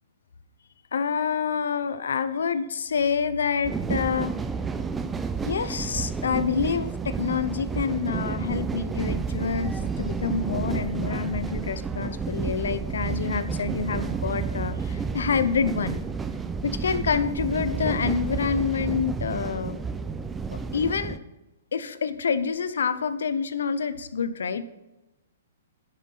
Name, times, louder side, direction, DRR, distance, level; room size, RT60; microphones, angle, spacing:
voice 1, 0.9-4.3 5.4-16.1 16.6-19.8 20.5-21.2 21.7-24.7, left 6 dB, 80° left, 12 dB, 0.9 m, -27 dB
sound 1, 3.6-21.2, right 5 dB, 10° right, 0.6 m, -31 dB
10.5 x 7.6 x 5.7 m, 0.98 s
hypercardioid pair, 135°, 0 cm